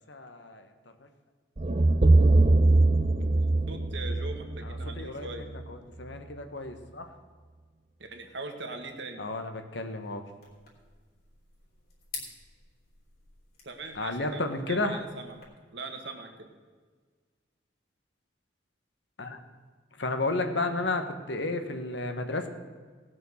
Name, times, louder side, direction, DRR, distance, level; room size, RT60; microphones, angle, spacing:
voice 1, 0.1-0.7 4.6-5.3 5.7-7.0 9.2-10.2 13.9-15.0 19.2-19.4 20.0-22.5, left 2 dB, 65° left, 7 dB, 1.3 m, -32 dB
sound 1, 1.6-5.7, right 2 dB, 35° right, 0.6 m, -22 dB
voice 2, 3.7-5.5 8.0-9.2 13.6-15.4 15.7-16.5, right 3 dB, 65° right, 4 dB, 1.6 m, -41 dB
sound 2, 10.4-15.4, left 5 dB, 50° left, 3.3 m, -48 dB
18.0 x 6.4 x 6.3 m, 1.5 s
head